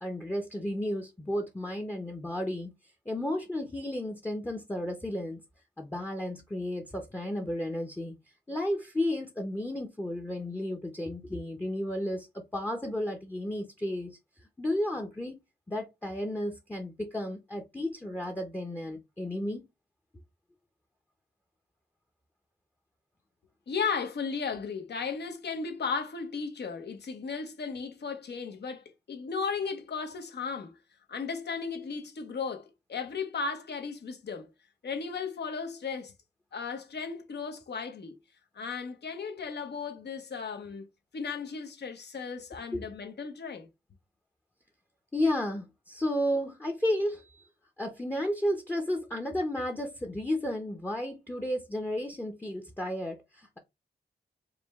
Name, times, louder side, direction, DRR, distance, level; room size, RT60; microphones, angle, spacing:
voice 1, 0.0-2.7 3.1-5.4 5.8-8.2 8.5-14.2 14.6-15.4 15.7-19.6 42.7-42.9 45.1-47.5 47.8-53.6, left 1 dB, 10° left, 0.6 m, -33 dB
voice 2, 23.7-30.8 31.1-34.5 34.8-36.1 36.5-38.2 38.5-40.9 41.1-43.7, left 5 dB, 70° left, 0.9 m, -35 dB
4.9 x 2.2 x 3.4 m
wide cardioid pair, 100°, 18 cm